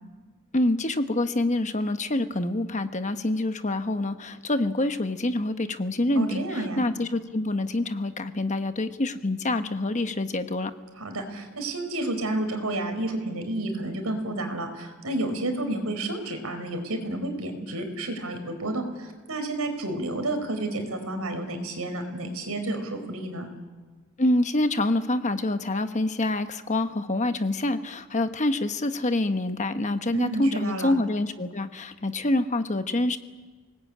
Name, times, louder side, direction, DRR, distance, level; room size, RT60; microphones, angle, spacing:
voice 1, 0.5-10.7 24.2-33.2, left 2 dB, 35° left, 9 dB, 1.1 m, -26 dB
voice 2, 6.2-6.9 11.0-23.5 30.1-30.9, right 1 dB, 85° right, 6 dB, 4.5 m, -30 dB
28.0 x 19.5 x 8.7 m, 1.4 s
head